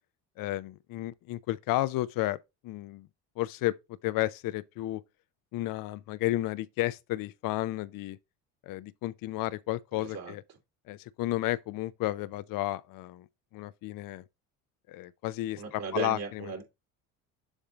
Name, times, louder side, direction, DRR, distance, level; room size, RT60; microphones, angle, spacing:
voice 1, 0.4-2.4 2.6-3.1 3.4-3.8 4.0-5.0 5.5-8.2 8.6-10.4 10.9-13.3 13.5-14.2 14.9-16.5, left 16 dB, 55° left, 0.6 m, -32 dB
voice 2, 9.9-10.3 15.6-16.6, right 5 dB, 55° right, 2.7 m, -36 dB
7.2 x 3.6 x 4.0 m
hypercardioid pair, 65°, 41 cm